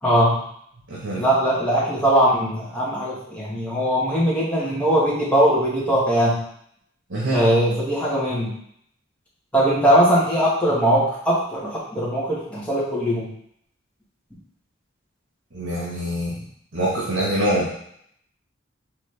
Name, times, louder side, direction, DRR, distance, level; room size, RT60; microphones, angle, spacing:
voice 1, 0.0-0.3 1.2-6.4 7.3-8.5 9.5-13.3, equal, 5° left, -8 dB, 1.2 m, -20 dB
voice 2, 0.9-1.2 7.1-7.4 15.5-16.4 16.7-17.7, right 1 dB, 70° right, -6 dB, 1.2 m, -24 dB
4.5 x 3.1 x 3.2 m, 0.68 s
head